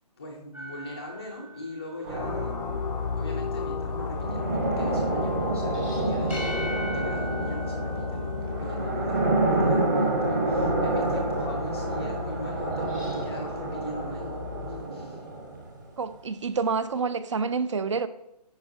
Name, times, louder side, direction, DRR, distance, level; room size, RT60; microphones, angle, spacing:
voice 1, 0.2-2.6 3.1-6.6 6.8-15.2, left 1 dB, 15° left, 0.4 m, -40 dB
sound 1, 0.5-2.5 5.5-9.2 12.7-13.2, equal, 5° right, 0.9 m, -41 dB
sound 2, 2.0-15.9, right 2 dB, 30° right, 1.1 m, -29 dB
sound 3, 2.2-14.9, left 5 dB, 85° left, 0.4 m, -34 dB
voice 2, 16.0-18.1, right 5 dB, 45° right, 0.5 m, -28 dB
9.5 x 5.1 x 2.7 m
hypercardioid pair, 165°, 21 cm